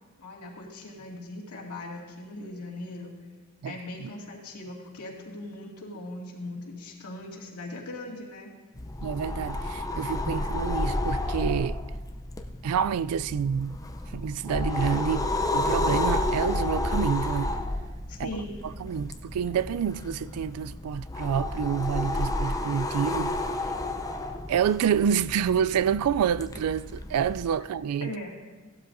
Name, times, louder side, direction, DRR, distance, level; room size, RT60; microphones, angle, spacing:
voice 1, 0.2-3.1 3.6-8.5 18.1-18.6 28.0-28.3, left 2 dB, 90° left, 2.3 m, -39 dB
voice 2, 3.6-4.1 9.0-11.8 12.6-13.8 14.1-15.3 15.5-17.5 18.2-18.3 18.8-23.3 24.5-28.1, right 8 dB, 80° right, 0.3 m, -28 dB
sound 1, 8.8-27.5, left 2 dB, 15° left, 0.5 m, -31 dB
17.0 x 12.5 x 2.6 m
head